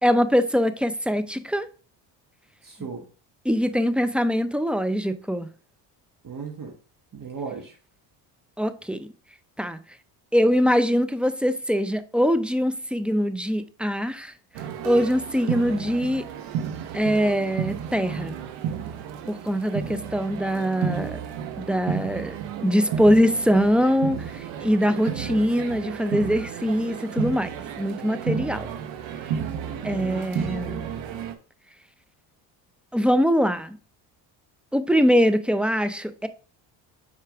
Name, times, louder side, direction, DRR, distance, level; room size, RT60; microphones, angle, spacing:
voice 1, 0.0-1.7 3.5-5.5 8.6-9.1 9.6-9.8 10.3-14.3 14.8-16.2 16.9-18.4 19.3-21.2 21.6-28.7 29.8-30.9 32.9-33.8 34.7-36.3, equal, ahead, 0.4 m, -23 dB
voice 2, 2.6-3.0 6.2-6.8 7.1-7.8 29.7-30.3, right 5 dB, 40° right, 1.5 m, -36 dB
sound 1, 14.5-31.3, right 8 dB, 70° right, 1.1 m, -32 dB
5.8 x 4.7 x 3.5 m
supercardioid pair, 70°, 49 cm